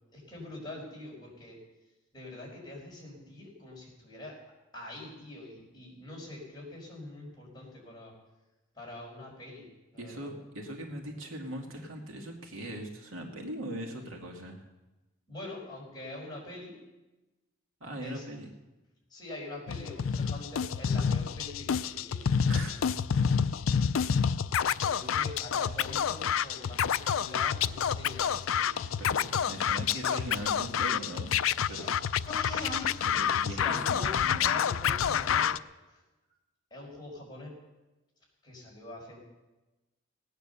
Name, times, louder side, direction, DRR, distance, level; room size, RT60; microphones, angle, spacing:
voice 1, 0.1-1.6 2.1-4.3 4.7-8.1 8.7-10.3 15.3-16.8 18.0-18.2 19.1-22.3 24.6-29.2 31.6-31.9 32.2-35.5 35.9-36.0 36.7-37.5 38.4-39.2, left 2 dB, 20° left, -3 dB, 5.2 m, -44 dB
voice 2, 10.0-14.6 17.8-18.5 22.5-22.8 29.0-31.3 31.7-31.8 33.2-34.5, right 1 dB, 80° right, 2 dB, 2.3 m, -40 dB
Scratching (performance technique), 19.7-35.6, left 7 dB, 75° left, 0.4 m, -28 dB
18.5 x 9.4 x 6.9 m, 1.1 s
head